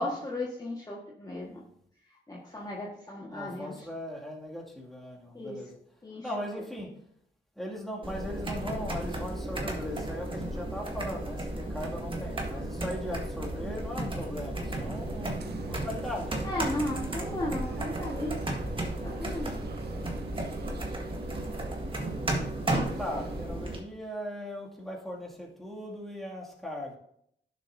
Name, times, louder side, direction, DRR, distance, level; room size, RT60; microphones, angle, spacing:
voice 1, 0.0-1.6 2.1-3.9 5.3-5.7 6.0-6.5 16.4-18.4 18.9-19.5, left 1 dB, 20° left, -4 dB, 1.5 m, -35 dB
voice 2, 3.3-5.8 6.2-6.9 7.6-16.4 21.8-22.5 23.0-27.0, equal, ahead, -3 dB, 2.3 m, -39 dB
Laptop Typing, 8.0-23.8, right 1 dB, 25° right, 1.7 m, -34 dB
sound 1, 14.7-23.5, right 8 dB, 60° right, 0.5 m, -45 dB
11.0 x 6.9 x 2.7 m, 0.70 s
cardioid pair, 80°, 19 cm